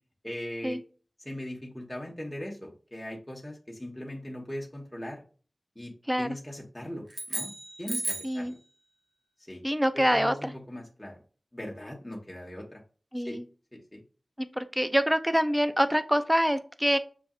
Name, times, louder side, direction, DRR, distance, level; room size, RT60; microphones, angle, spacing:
voice 1, 0.2-0.8 1.2-5.2 5.7-5.9 6.2-7.5 7.8-8.5 9.5-9.6 9.9-11.2 11.5-12.8 13.2-13.4 13.7-14.0, left 1 dB, 20° left, -2 dB, 1.2 m, -39 dB
sound 1, 7.1-8.5, right 2 dB, 65° right, 1.0 m, -34 dB
voice 2, 8.2-8.5 9.6-10.5 13.1-13.5 14.4-17.0, equal, 5° right, 10 dB, 0.5 m, -26 dB
6.9 x 2.5 x 2.4 m, 0.38 s
wide cardioid pair, 45°, 0 cm